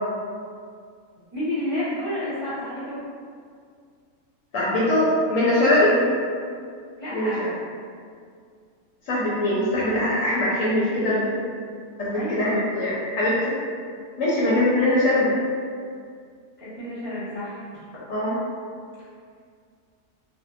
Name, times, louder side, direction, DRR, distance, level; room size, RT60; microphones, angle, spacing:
voice 1, 1.3-3.0 5.9-6.2 7.0-7.4 12.1-12.6 16.6-17.6, left 1 dB, 10° right, -13 dB, 0.7 m, -30 dB
voice 2, 4.5-6.0 7.1-7.5 9.1-11.3 12.0-13.5 14.2-15.3 18.1-18.4, left 1 dB, 70° left, -8 dB, 0.9 m, -22 dB
2.6 x 2.1 x 2.4 m, 2.2 s
omnidirectional pair, 1.6 m